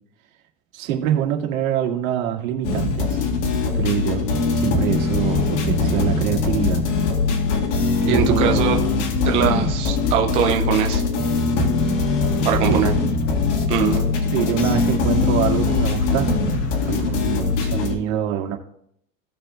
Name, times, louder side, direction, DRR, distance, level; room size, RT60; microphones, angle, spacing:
voice 1, 0.7-3.3 3.7-6.8 8.1-8.8 12.6-12.9 14.3-16.3 16.9-18.6, right 10 dB, 85° right, 1 dB, 2.1 m, -25 dB
sound 1, 2.6-18.0, left 4 dB, 65° left, 2.0 m, -21 dB
voice 2, 8.0-8.8 9.2-11.0 12.4-12.9 13.7-14.1, right 9 dB, 15° right, 2 dB, 0.4 m, -22 dB
17.0 x 5.8 x 2.5 m, 0.71 s
supercardioid pair, 175°, 40 cm